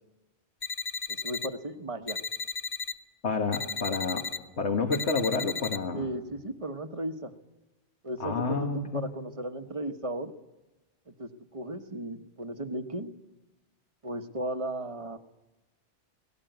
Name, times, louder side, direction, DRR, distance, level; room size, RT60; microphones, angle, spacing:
sound 1, 0.6-1.5 2.1-2.9 3.5-4.4 4.9-5.8, left 5 dB, 40° left, 1.2 m, -34 dB
voice 1, 1.1-2.2 5.9-7.3 8.0-10.3 11.2-13.1 14.0-15.2, right 1 dB, 30° right, 8 dB, 1.1 m, -35 dB
voice 2, 3.2-4.2 4.6-6.1 8.2-9.1, left 4 dB, 65° left, 3 dB, 1.9 m, -29 dB
18.0 x 18.0 x 9.2 m, 1.0 s
omnidirectional pair, 1.2 m